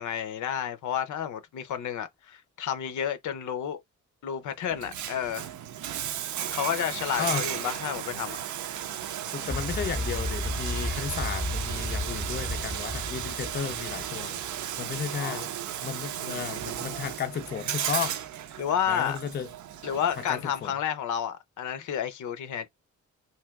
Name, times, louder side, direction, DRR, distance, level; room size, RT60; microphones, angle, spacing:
voice 1, 0.0-3.8 4.2-5.5 6.5-8.4 15.1-15.5 18.6-19.2 19.8-22.7, left 9 dB, 75° left, 0.6 m, -31 dB
Bathtub (filling or washing), 4.7-20.6, right 10 dB, 75° right, 0.5 m, -35 dB
voice 2, 9.3-14.4 14.8-15.5 15.8-18.2 18.9-19.5 20.3-20.7, left 8 dB, 35° left, 0.4 m, -34 dB
sound 1, 9.5-14.6, left 1 dB, 20° right, 0.8 m, -33 dB
3.3 x 2.6 x 2.3 m
cardioid pair, 125°, 30 cm